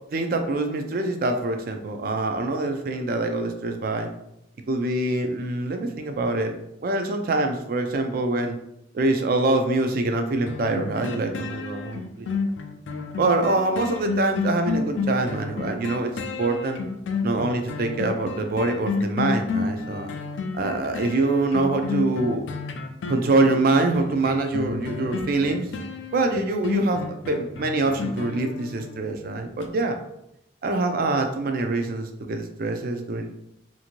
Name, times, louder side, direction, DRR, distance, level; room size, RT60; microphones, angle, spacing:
voice 1, 0.1-4.1 4.7-6.5 6.8-8.6 8.9-12.3 13.2-16.1 16.4-16.8 17.2-20.1 20.5-22.5 23.1-25.7 26.1-30.0 30.6-33.3, right 2 dB, 50° right, 5 dB, 0.4 m, -24 dB
sound 1, 10.5-29.2 29.6-29.7, left 4 dB, 75° left, 0.3 m, -30 dB
2.6 x 2.5 x 2.9 m, 0.81 s
head